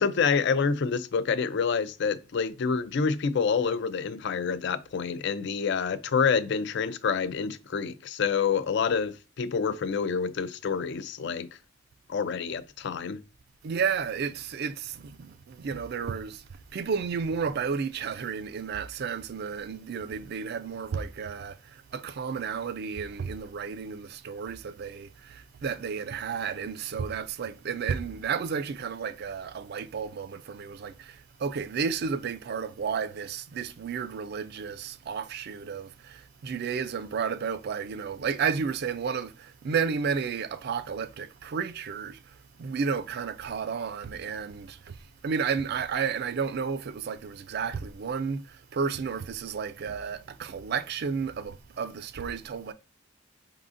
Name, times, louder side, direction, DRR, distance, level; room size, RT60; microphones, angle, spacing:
voice 1, 0.0-11.5 12.1-13.2, left 5 dB, 60° left, 0.4 m, -27 dB
voice 2, 13.6-16.5 16.7-52.7, right 6 dB, 50° right, 0.4 m, -32 dB
4.8 x 3.7 x 2.5 m
head